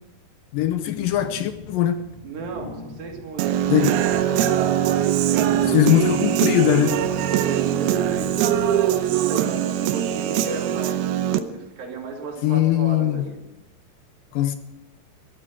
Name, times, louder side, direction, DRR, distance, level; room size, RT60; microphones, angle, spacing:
voice 1, 0.5-2.1 3.7-4.0 5.7-7.1 12.4-13.3 14.3-14.6, left 11 dB, 75° left, 2.1 m, -21 dB
sound 1, 0.6-9.1, left 3 dB, 10° left, 2.5 m, -41 dB
voice 2, 2.2-4.5 4.8-6.1 7.3-8.5 8.8-13.4, right 4 dB, 65° right, 4.3 m, -35 dB
Human voice / Guitar, 3.4-11.4, right 11 dB, 80° right, 2.6 m, -22 dB
14.5 x 13.0 x 6.1 m
omnidirectional pair, 4.6 m